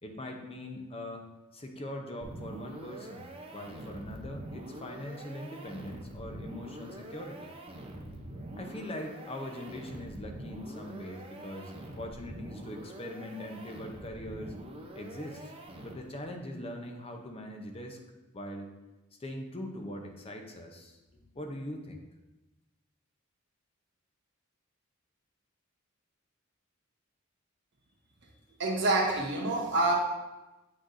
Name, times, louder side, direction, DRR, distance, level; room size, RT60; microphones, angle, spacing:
voice 1, 0.0-1.3 1.5-7.5 8.6-14.5 14.9-15.5 15.8-18.0 18.3-18.7 19.2-22.0, left 1 dB, 30° left, 3 dB, 0.7 m, -42 dB
sound 1, 2.2-16.3, right 1 dB, 25° right, 0.7 m, -45 dB
voice 2, 28.6-29.9, right 2 dB, 55° right, -1 dB, 1.4 m, -27 dB
7.9 x 6.2 x 2.7 m, 1.0 s
head